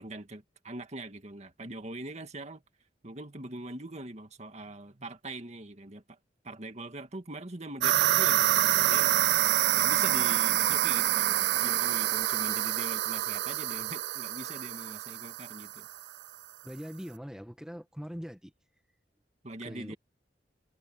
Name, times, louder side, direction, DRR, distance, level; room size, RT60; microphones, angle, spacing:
voice 1, 0.0-2.6 3.0-6.2 6.4-9.2 9.8-15.9 19.4-20.0, right 2 dB, 40° right, 1.9 m, -42 dB
sound 1, 7.8-16.0, right 13 dB, 70° right, 0.3 m, -27 dB
voice 2, 16.6-18.5 19.6-19.9, equal, 5° right, 1.5 m, -42 dB
head